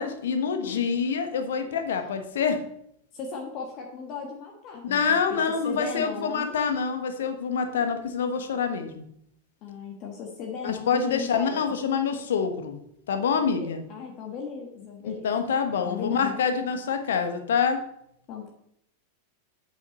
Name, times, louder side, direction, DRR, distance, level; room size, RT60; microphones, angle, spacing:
voice 1, 0.0-2.6 4.8-9.0 10.6-12.8 13.1-13.8 15.0-17.8, left 6 dB, 60° left, 7 dB, 1.1 m, -26 dB
voice 2, 3.1-6.6 9.6-11.8 13.6-15.5 15.8-16.4 18.3-18.5, left 5 dB, 40° left, 1 dB, 1.4 m, -37 dB
8.3 x 5.5 x 5.3 m, 0.73 s
figure-of-eight pair, 90°, 0 cm